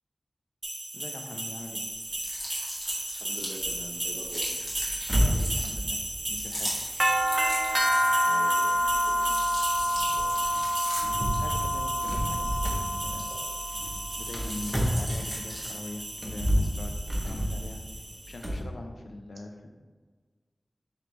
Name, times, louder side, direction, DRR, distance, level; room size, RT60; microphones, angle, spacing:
sound 1, 0.6-18.3, equal, 30° right, 0.4 m, -30 dB
voice 1, 0.9-1.8 5.1-6.0 6.3-6.7 11.4-13.3 14.1-16.9 17.2-17.8 18.3-19.7, left 2 dB, 70° left, 3 dB, 0.5 m, -42 dB
sound 2, 1.9-8.4 8.8-13.7 14.0-15.9, equal, 40° left, 1.3 m, -40 dB
voice 2, 3.1-4.6 8.2-9.5 9.8-10.3, right 1 dB, 85° right, 0 dB, 0.7 m, -45 dB
sound 3, 3.6-15.6 16.1-18.7, equal, ahead, 0.8 m, -31 dB
3.2 x 3.2 x 3.9 m, 1.4 s
wide cardioid pair, 85°, 0 cm